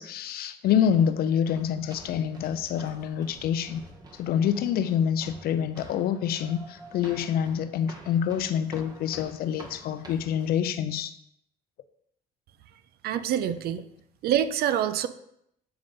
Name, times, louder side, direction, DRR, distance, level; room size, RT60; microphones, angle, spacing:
voice 1, 0.0-3.8 4.1-11.2, left 8 dB, 65° left, 12 dB, 0.5 m, -27 dB
sound 1, 0.7-10.5, right 2 dB, 25° right, 1.0 m, -48 dB
voice 2, 13.0-13.9 14.2-15.1, right 10 dB, 65° right, 12 dB, 0.5 m, -26 dB
7.9 x 3.7 x 3.9 m, 0.75 s
cardioid pair, 110°, 17 cm